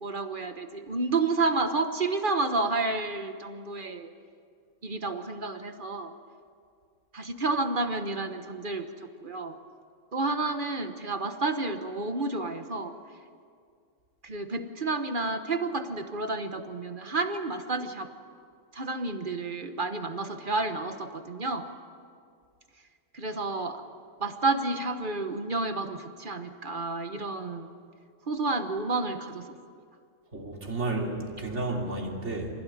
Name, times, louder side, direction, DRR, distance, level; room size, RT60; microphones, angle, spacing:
voice 1, 0.0-4.1 4.8-6.1 7.1-9.6 10.1-12.9 14.2-18.1 18.7-21.7 23.1-23.8 24.2-27.8 28.3-29.5, right 3 dB, 40° right, 7 dB, 1.3 m, -30 dB
voice 2, 30.3-32.5, right 2 dB, 60° right, -1 dB, 3.4 m, -32 dB
26.0 x 15.5 x 9.5 m, 2.2 s
omnidirectional pair, 1.4 m